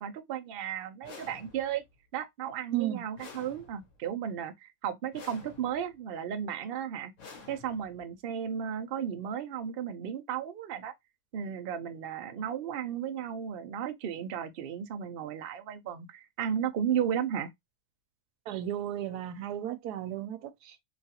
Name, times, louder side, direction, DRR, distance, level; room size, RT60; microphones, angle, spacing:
voice 1, 0.0-1.8 2.1-7.1 7.5-10.9 11.3-17.5, right 8 dB, 70° right, 0.5 m, -34 dB
sound 1, 1.0-1.9 3.2-4.1 5.1-5.9 7.2-8.1, left 4 dB, 60° left, 1.2 m, -50 dB
voice 2, 2.7-3.0 18.5-20.8, right 12 dB, 90° right, 1.1 m, -34 dB
3.0 x 2.4 x 2.7 m
omnidirectional pair, 1.6 m